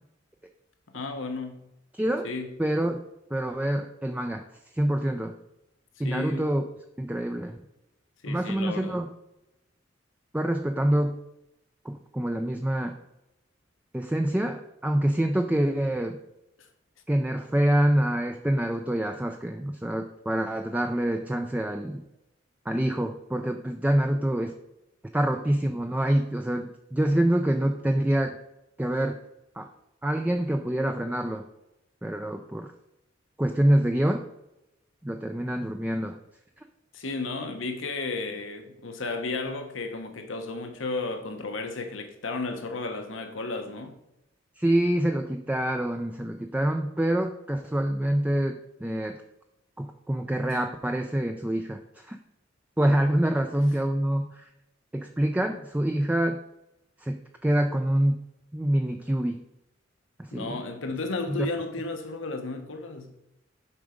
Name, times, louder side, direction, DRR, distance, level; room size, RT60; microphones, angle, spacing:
voice 1, 0.9-1.6 2.2-2.5 6.0-6.5 8.2-9.0 36.9-44.0 60.3-63.1, left 3 dB, 85° left, 1.1 m, -33 dB
voice 2, 1.9-2.3 2.6-3.0 3.3-4.4 4.7-5.3 6.0-6.6 7.0-7.6 8.2-9.1 10.3-11.2 11.8-13.0 13.9-16.2 17.1-22.0 22.7-24.5 25.1-28.4 28.8-29.2 29.6-29.7 30.0-31.5 32.0-32.7 33.4-34.2 35.0-36.2 44.6-49.2 49.8-52.2 52.8-54.5 54.9-56.4 57.0-58.2 58.5-59.4 60.2-60.5 61.3-61.5, right 1 dB, 10° right, 0.4 m, -26 dB
7.3 x 4.8 x 5.1 m
head